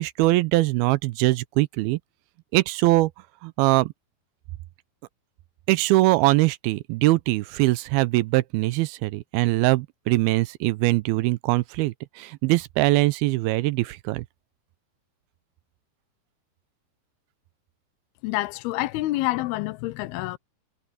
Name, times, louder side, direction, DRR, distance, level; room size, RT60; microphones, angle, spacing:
voice 1, 0.0-2.0 2.5-3.1 3.4-3.9 5.7-14.2, right 19 dB, 80° right, 2.5 m, -22 dB
voice 2, 18.2-20.4, left 18 dB, 90° left, 2.6 m, -27 dB
omnidirectional pair, 4.4 m